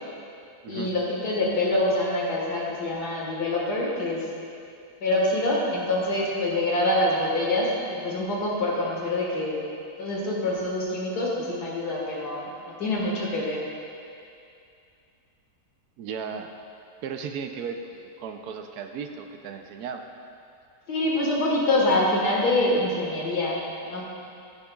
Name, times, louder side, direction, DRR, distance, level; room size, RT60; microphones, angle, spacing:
voice 1, 0.7-4.2 5.0-9.6 10.0-13.6 20.9-24.0, left 1 dB, 75° left, -3 dB, 2.2 m, -25 dB
voice 2, 16.0-16.5 17.0-20.0, right 6 dB, 75° right, 5 dB, 1.1 m, -35 dB
13.5 x 9.7 x 2.4 m, 2.5 s
omnidirectional pair, 1.7 m